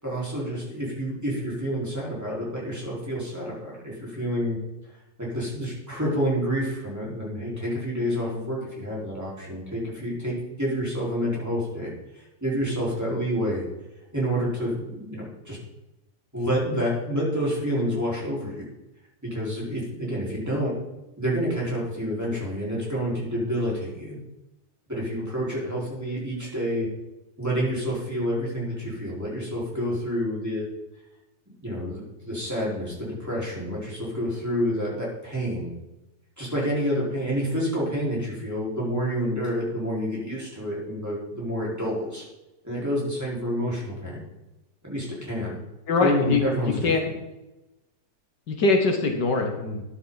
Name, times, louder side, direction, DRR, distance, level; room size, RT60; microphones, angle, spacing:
voice 1, 0.0-4.6 5.2-13.6 14.1-15.6 16.3-18.7 19.2-20.7 21.2-24.2 24.9-26.9 27.4-30.6 31.6-35.7 36.4-42.2 42.6-44.2 44.8-45.6 46.0-46.9, equal, 10° right, -6 dB, 4.6 m, -28 dB
voice 2, 45.9-47.0 48.5-49.8, left 3 dB, 70° left, 3 dB, 1.9 m, -23 dB
14.0 x 10.0 x 4.1 m, 0.99 s
omnidirectional pair, 2.0 m